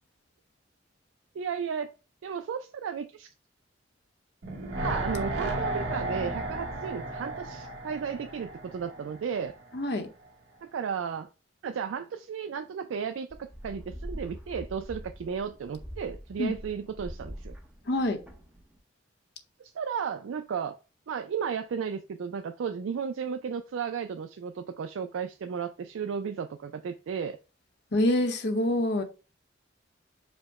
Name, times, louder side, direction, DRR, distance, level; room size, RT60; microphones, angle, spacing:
voice 1, 1.4-1.9 2.2-3.3 4.8-9.5 10.6-11.3 11.6-17.6 19.6-20.7 21.1-27.4, right 6 dB, 85° right, 0.4 m, -34 dB
sound 1, 4.4-9.6 9.9-10.0, right 1 dB, 65° right, 1.1 m, -34 dB
voice 2, 9.7-10.1 16.4-16.5 17.9-18.2 27.9-29.0, left 1 dB, 60° left, 0.8 m, -26 dB
sound 2, 13.3-18.8, equal, 5° right, 0.6 m, -43 dB
5.1 x 2.1 x 4.6 m
head